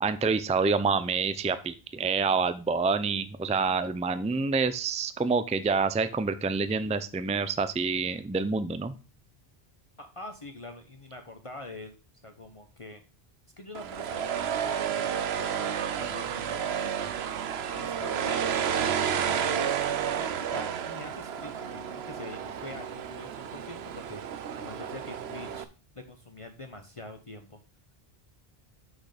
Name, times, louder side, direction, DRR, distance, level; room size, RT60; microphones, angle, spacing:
voice 1, 0.0-8.9, right 4 dB, 10° right, 12 dB, 0.4 m, -27 dB
voice 2, 10.0-12.0 12.2-13.0 13.6-17.3 17.6-18.5 19.1-19.5 19.9-24.2 24.6-25.7 25.9-27.6, left 2 dB, 35° left, 5 dB, 0.9 m, -45 dB
sound 1, 13.7-25.6, right 8 dB, 85° right, 1.0 m, -31 dB
6.3 x 6.2 x 5.0 m, 0.34 s
omnidirectional pair, 1.0 m